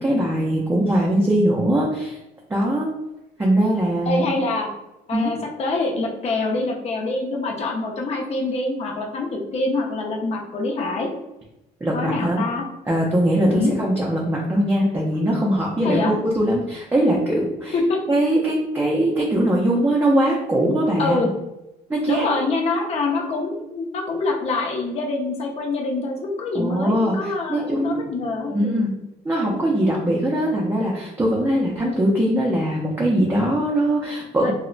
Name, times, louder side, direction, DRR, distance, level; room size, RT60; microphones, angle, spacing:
voice 1, 0.0-2.2 2.5-2.9 3.4-4.4 5.1-5.4 11.8-12.4 12.9-17.8 18.1-21.3 21.9-22.3 26.5-28.2 28.5-28.9 29.2-34.5, right 1 dB, 10° right, -3 dB, 0.4 m, -21 dB
voice 2, 4.1-4.7 5.1-11.1 11.9-12.6 13.5-13.7 15.8-16.1 17.7-18.0 21.0-21.3 22.1-28.8 34.4-34.5, left 3 dB, 40° left, 0 dB, 0.6 m, -25 dB
2.1 x 2.1 x 3.8 m, 0.95 s
cardioid pair, 110°, 17 cm